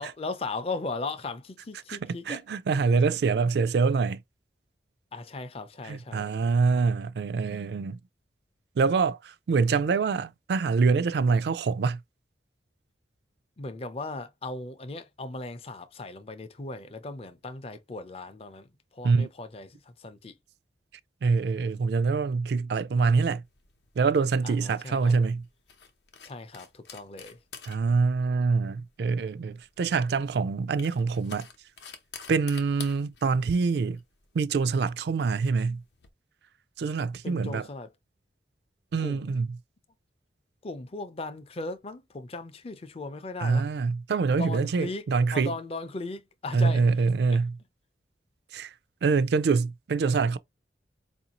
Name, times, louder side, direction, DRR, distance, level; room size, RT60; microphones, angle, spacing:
voice 1, 0.0-2.4 5.1-6.3 13.6-20.4 24.4-25.2 26.2-27.4 37.2-37.9 39.0-39.4 40.6-43.7 44.3-45.0 45.3-46.9 47.3-47.4, left 3 dB, 35° left, 0.5 m, -37 dB
voice 2, 2.3-4.2 5.8-8.0 8.8-12.0 19.0-19.3 21.2-23.4 24.0-25.4 27.7-31.5 32.3-34.0 34.3-35.8 36.8-37.7 38.9-39.5 43.4-45.5 46.5-47.6 48.5-48.7 49.0-50.4, right 4 dB, 65° right, 0.3 m, -25 dB
sound 1, 23.5-36.1, left 6 dB, 75° left, 0.7 m, -49 dB
4.5 x 2.6 x 2.9 m
head